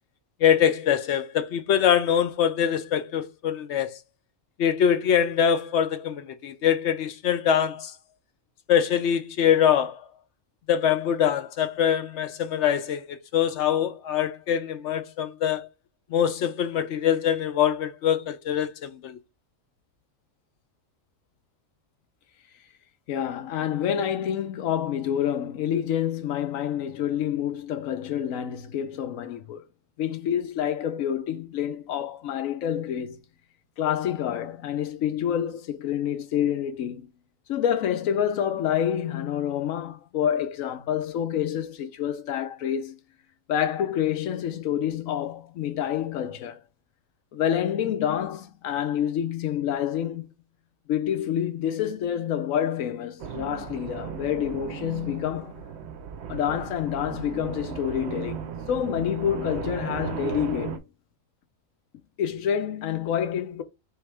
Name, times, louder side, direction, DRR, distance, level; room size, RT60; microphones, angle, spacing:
voice 1, 0.4-4.0 4.6-7.9 8.7-10.0 10.7-15.7 16.1-19.2, left 9 dB, 65° left, 0.8 m, -23 dB
voice 2, 23.1-29.6 30.0-33.2 33.8-37.1 37.5-43.0 43.5-46.6 47.3-50.3 50.9-55.6 56.3-60.8 62.2-63.6, left 9 dB, 85° left, 1.1 m, -28 dB
sound 1, 53.2-60.8, right 7 dB, 65° right, 0.9 m, -36 dB
3.5 x 3.2 x 4.6 m
omnidirectional pair, 1.4 m